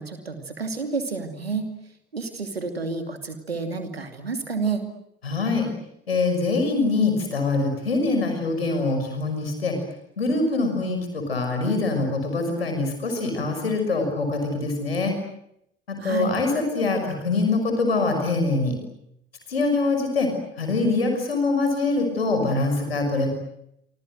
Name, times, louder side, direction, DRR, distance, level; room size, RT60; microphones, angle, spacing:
voice 1, 0.0-1.7 2.1-4.8 16.0-16.3, right 4 dB, 85° right, 7 dB, 2.7 m, -29 dB
voice 2, 5.2-5.7 6.1-9.8 10.2-15.1 15.9-18.8 19.5-20.3 20.6-23.3, left 3 dB, 85° left, 5 dB, 6.1 m, -24 dB
28.0 x 25.5 x 7.8 m, 0.76 s
figure-of-eight pair, 50°, 30 cm